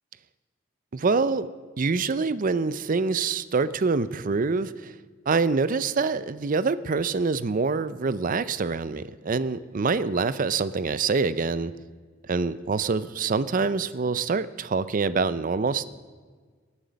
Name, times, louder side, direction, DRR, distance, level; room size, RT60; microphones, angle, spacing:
voice 1, 0.9-1.5 1.8-4.9 5.3-11.7 12.2-15.9, right 4 dB, 45° right, 16 dB, 0.5 m, -25 dB
20.0 x 11.5 x 5.1 m, 1.5 s
head